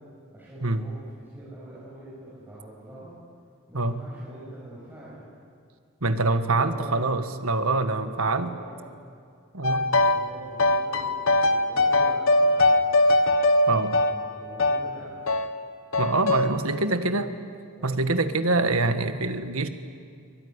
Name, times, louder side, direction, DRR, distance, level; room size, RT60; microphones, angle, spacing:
voice 1, 0.3-0.9 1.3-3.2 3.7-5.2 6.2-7.5 7.8-8.8 9.6-12.9 14.0-15.3 16.7-17.2 17.8-18.0, right 1 dB, 10° right, -8 dB, 7.3 m, -44 dB
voice 2, 3.7-4.1 6.0-8.5 9.5-9.9 13.7-14.0 16.0-17.3 17.8-19.7, right 3 dB, 70° right, 9 dB, 1.6 m, -25 dB
sound 1, 9.6-10.3 10.6-14.9 15.3-15.5 15.9-16.5, left 2 dB, 65° left, 1.4 m, -21 dB
24.0 x 23.0 x 9.8 m, 2.2 s
head